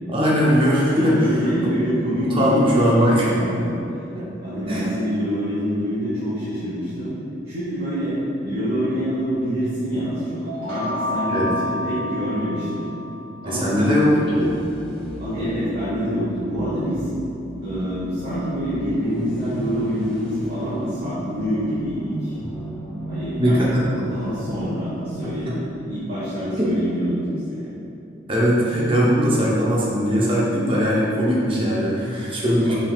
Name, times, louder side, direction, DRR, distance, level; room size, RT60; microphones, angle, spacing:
voice 1, 0.1-1.2 1.4-1.7 2.2-3.4 4.1-4.3 4.7-4.9 11.3-11.5 13.4-14.5 23.4-23.8 25.2-25.6 26.6-26.7 28.3-32.7, equal, 25° right, -6 dB, 0.8 m, -20 dB
voice 2, 1.1-3.7 4.4-7.1 7.4-8.1 8.4-12.9 13.4-14.0 15.2-17.0 17.6-22.3 23.1-23.7 24.0-27.7 32.7-32.8, equal, 50° right, -13 dB, 1.2 m, -26 dB
sound 1, 10.4-13.2, left 1 dB, 75° right, 1.5 m, -29 dB
sound 2, 13.6-25.5, equal, 5° left, 0.5 m, -35 dB
5.3 x 3.5 x 2.4 m, 2.8 s
head